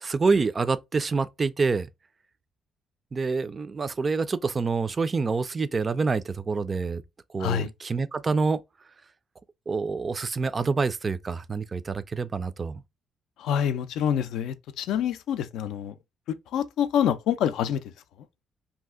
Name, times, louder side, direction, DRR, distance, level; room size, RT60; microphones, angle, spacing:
voice 1, 0.0-1.9 3.1-7.0 7.3-8.6 9.7-12.8, right 4 dB, 35° right, 0.3 m, -27 dB
voice 2, 7.4-7.7 13.4-15.9 16.5-17.8, left 9 dB, 85° left, 0.3 m, -26 dB
2.7 x 2.4 x 3.4 m
cardioid pair, 95°, 0 cm